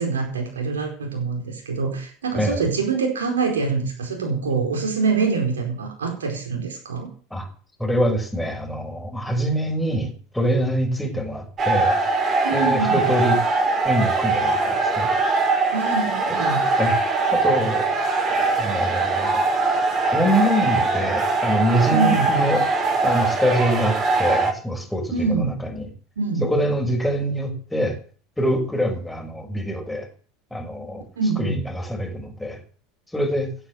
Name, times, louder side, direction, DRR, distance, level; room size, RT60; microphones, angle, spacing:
voice 1, 0.0-7.1 12.4-13.1 15.7-16.7 21.9-22.3 25.1-25.6 26.2-26.5 31.2-31.6, right 4 dB, 75° right, 2 dB, 4.5 m, -25 dB
voice 2, 2.3-2.6 7.3-7.5 7.8-12.0 12.5-13.4 13.8-15.1 16.3-16.4 16.8-17.0 17.3-17.9 18.6-19.4 20.1-22.6 23.0-25.9 26.4-28.0 28.4-30.1 30.5-31.0 31.4-32.6 33.1-33.5, equal, 5° left, 2 dB, 6.3 m, -24 dB
sound 1, 11.6-24.5, right 3 dB, 35° right, 5.3 m, -21 dB
16.5 x 9.9 x 7.8 m, 0.43 s
figure-of-eight pair, 75°, 0 cm